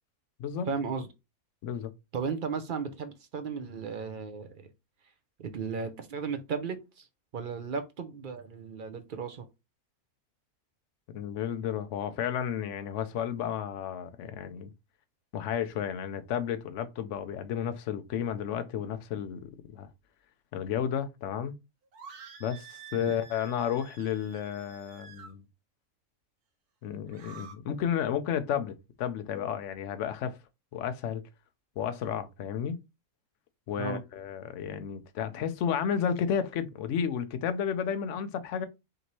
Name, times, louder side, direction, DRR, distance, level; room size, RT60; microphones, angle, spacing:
voice 1, 0.7-1.1 2.1-4.7 5.4-7.1 7.3-9.5 23.0-23.1 33.8-34.0, right 5 dB, 55° right, 0.5 m, -35 dB
voice 2, 11.1-14.7 15.3-19.9 20.5-21.5 22.4-25.4 26.8-30.4 30.7-31.2 31.8-32.8 33.7-38.7, left 8 dB, 65° left, 0.9 m, -32 dB
sound 1, 21.9-25.3 27.0-27.5, right 6 dB, 90° right, 1.4 m, -49 dB
5.1 x 2.8 x 3.0 m
omnidirectional pair, 1.6 m